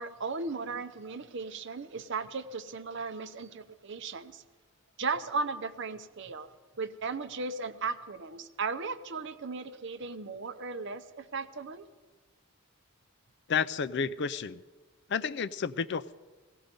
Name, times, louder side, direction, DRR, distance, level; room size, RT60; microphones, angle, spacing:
voice 1, 0.0-4.4 5.0-6.5 6.8-11.8, right 4 dB, 55° right, 11 dB, 0.7 m, -36 dB
voice 2, 13.5-14.6 15.1-16.2, left 6 dB, 50° left, 16 dB, 0.4 m, -31 dB
16.5 x 16.5 x 5.2 m, 1.3 s
head